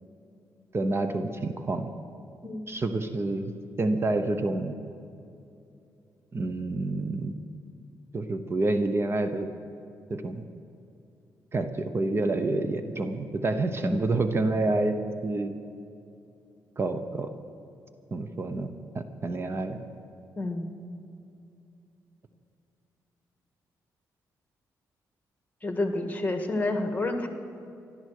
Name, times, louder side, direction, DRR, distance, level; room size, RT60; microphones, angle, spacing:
voice 1, 0.7-1.9 2.7-3.5 3.8-4.7 6.3-7.3 8.1-9.5 10.1-10.4 11.5-15.0 15.2-15.5 16.8-17.3 18.1-18.7 18.9-19.8, right 2 dB, 35° right, 9 dB, 0.9 m, -28 dB
voice 2, 20.4-20.7 25.6-27.3, left 2 dB, 25° left, 5 dB, 1.7 m, -29 dB
15.5 x 12.0 x 6.6 m, 2.6 s
cardioid pair, 85°, 7 cm